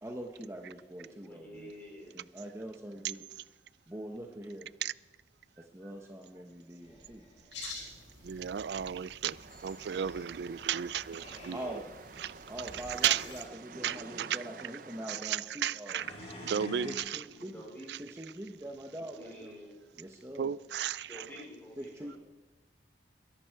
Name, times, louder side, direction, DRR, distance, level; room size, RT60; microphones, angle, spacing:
voice 1, 0.0-1.7 2.1-3.2 3.9-4.7 5.6-7.3 11.5-11.9 12.5-16.0 16.8-17.5 18.0-19.5 20.0-20.5 21.8-22.2, right 1 dB, 15° right, 0.9 m, -43 dB
voice 2, 1.0-2.2 17.3-17.9 19.1-19.7 20.0-20.1 21.1-22.2, equal, 10° left, 3.8 m, -49 dB
sound 1, 6.8-7.7 11.0-11.8 12.5-13.0 13.6-14.3 15.9-17.0, left 1 dB, 35° left, 3.6 m, -48 dB
sound 2, 7.5-13.4, left 3 dB, 85° left, 5.5 m, -49 dB
voice 3, 8.2-9.4 9.6-11.8 12.2-13.3 13.8-14.4 15.1-16.1 16.4-17.2 17.9-18.0 20.4-21.2, right 9 dB, 65° right, 0.4 m, -34 dB
sound 3, 9.2-15.2, right 4 dB, 50° right, 0.7 m, -50 dB
22.5 x 11.0 x 4.6 m
head